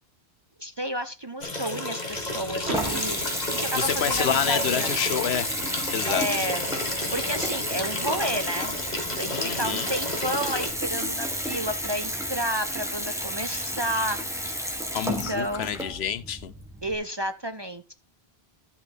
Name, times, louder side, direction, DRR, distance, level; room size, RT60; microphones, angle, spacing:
voice 1, 0.6-3.2 3.5-4.9 6.1-6.6 7.1-8.7 9.2-14.2 15.0-15.8 16.8-17.9, right 1 dB, 30° right, 0.5 m, -31 dB
sound 1, 1.4-10.7, left 2 dB, 40° left, 1.8 m, -32 dB
Water tap faucet / Bathtub (filling or washing) / Trickle dribble, 2.1-17.0, equal, 5° right, 1.8 m, -32 dB
Car / Door, 2.6-4.6, right 2 dB, 75° right, 2.5 m, -38 dB
voice 2, 3.8-5.5 5.9-6.4 9.3-9.9 14.9-16.5, left 8 dB, 75° left, 1.0 m, -28 dB
12.0 x 5.8 x 4.1 m
omnidirectional pair, 1.1 m